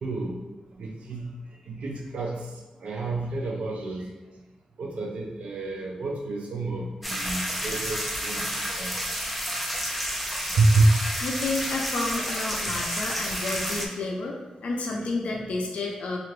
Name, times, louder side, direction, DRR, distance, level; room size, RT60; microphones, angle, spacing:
voice 1, 0.0-0.4 0.8-1.3 1.7-2.5 2.8-4.1 4.8-8.5 8.8-8.9 10.6-10.9, right 2 dB, 75° right, 0 dB, 0.4 m, -27 dB
sound 1, 7.0-13.9, equal, ahead, 0.3 m, -30 dB
voice 2, 11.2-16.2, left 2 dB, 75° left, -1 dB, 0.4 m, -30 dB
2.7 x 2.5 x 3.1 m, 1.1 s
wide cardioid pair, 140°, 2 cm